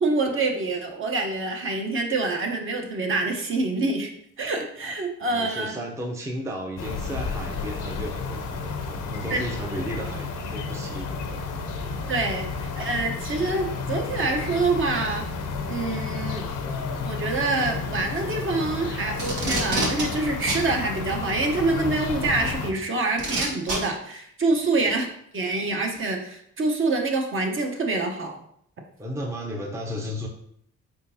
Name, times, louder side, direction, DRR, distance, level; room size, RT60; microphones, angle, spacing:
voice 1, 0.0-4.1 4.4-5.7 9.3-9.4 12.1-15.2 15.7-16.5 17.0-25.1 25.3-28.4, right 3 dB, 45° right, 2 dB, 0.8 m, -26 dB
voice 2, 5.2-11.4 29.0-30.3, equal, 10° right, 1 dB, 0.5 m, -34 dB
sound 1, 6.8-22.7, left 4 dB, 80° left, 0.6 m, -31 dB
Packing tape duct tape, 19.1-20.0 20.5-20.6 22.0-22.1 23.2-23.8 24.8-24.9, right 2 dB, 75° right, 1.4 m, -26 dB
4.4 x 3.6 x 2.7 m, 0.69 s
cardioid pair, 90°, 30 cm